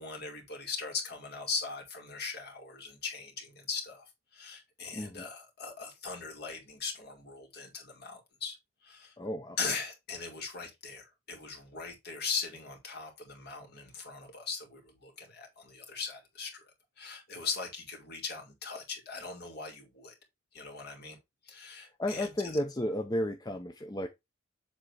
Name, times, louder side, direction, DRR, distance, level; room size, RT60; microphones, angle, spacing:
voice 1, 0.0-8.6 8.8-9.1 9.6-20.1 20.5-21.2 21.4-22.6, left 5 dB, 50° left, 2.4 m, -39 dB
voice 2, 4.9-5.3 9.2-9.6 21.8-24.1, left 1 dB, 20° left, 0.7 m, -33 dB
7.7 x 3.5 x 4.8 m
head